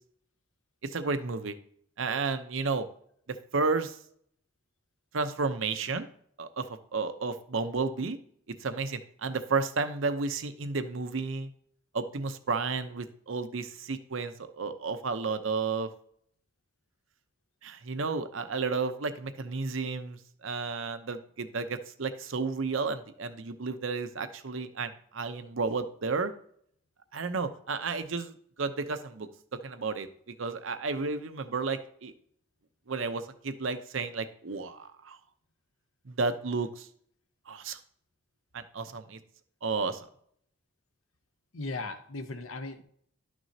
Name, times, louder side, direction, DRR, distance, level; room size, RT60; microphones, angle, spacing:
voice 1, 0.8-1.5 2.0-2.9 3.5-3.9 5.1-6.1 6.4-6.7 6.9-8.2 8.6-11.5 11.9-15.9 17.6-26.3 27.1-28.3 28.6-29.3 29.6-32.1 32.9-35.2 36.1-36.9 37.5-37.8 38.5-39.2 39.6-40.0, right 4 dB, 75° right, 10 dB, 0.7 m, -32 dB
voice 2, 41.5-42.8, left 3 dB, 90° left, 8 dB, 1.0 m, -37 dB
11.5 x 6.1 x 2.8 m, 0.64 s
head